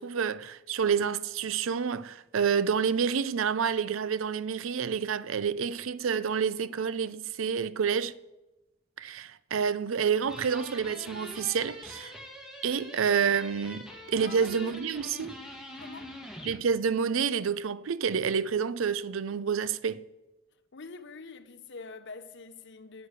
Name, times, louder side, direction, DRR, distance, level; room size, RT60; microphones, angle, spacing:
voice 1, 0.0-8.1 9.0-12.1 12.6-15.4 16.4-20.0, right 6 dB, 85° right, 0.5 m, -28 dB
sound 1, 10.2-16.6, equal, 5° right, 1.8 m, -44 dB
voice 2, 14.1-14.5 15.0-15.1 15.8-16.1 20.7-23.1, left 4 dB, 65° left, 0.8 m, -45 dB
9.2 x 8.5 x 8.2 m
head